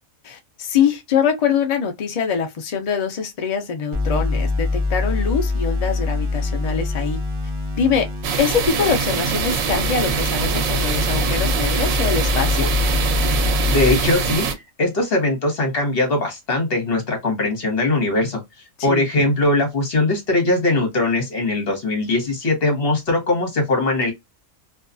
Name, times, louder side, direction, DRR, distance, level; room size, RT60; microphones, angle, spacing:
voice 1, 0.2-7.2 7.8-8.1 8.4-12.7 18.8-19.0, left 7 dB, 75° left, 0.3 m, -23 dB
sound 1, 3.9-13.9, left 3 dB, 25° right, 0.8 m, -24 dB
sound 2, 8.2-14.5, right 5 dB, 90° right, 1.0 m, -23 dB
voice 2, 13.6-18.4 18.8-24.1, left 2 dB, 50° left, 1.2 m, -21 dB
2.5 x 2.3 x 2.4 m
omnidirectional pair, 1.4 m